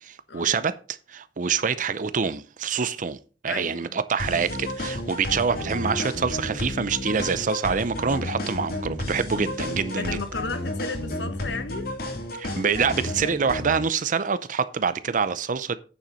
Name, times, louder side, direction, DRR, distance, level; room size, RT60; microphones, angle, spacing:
voice 1, 0.0-10.2 12.4-15.8, right 5 dB, 45° right, 0.6 m, -26 dB
voice 2, 3.4-4.0 10.0-11.9, left 3 dB, 85° left, 1.4 m, -34 dB
sound 1, 4.2-13.8, left 1 dB, 60° left, 2.5 m, -32 dB
9.1 x 7.1 x 5.2 m
head